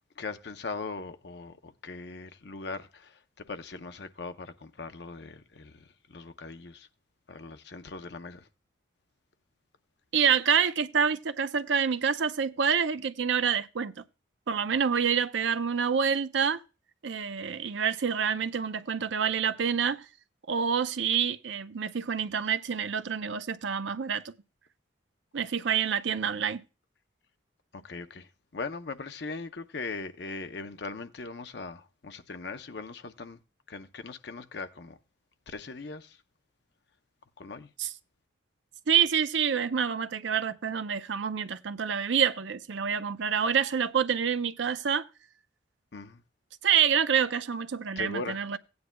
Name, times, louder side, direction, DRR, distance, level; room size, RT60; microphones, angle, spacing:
voice 1, 0.2-3.2 3.5-5.8 6.1-6.9 7.3-8.5 27.7-28.3 28.5-33.4 33.7-35.0 35.5-36.2 37.4-37.7 45.9-46.2 48.0-48.6, left 3 dB, 60° left, 0.7 m, -40 dB
voice 2, 10.1-14.0 14.5-16.6 17.0-20.0 20.5-24.3 25.3-26.6 37.8-37.9 38.9-45.1 46.6-48.6, right 7 dB, 70° right, 0.5 m, -27 dB
16.5 x 9.5 x 2.2 m
head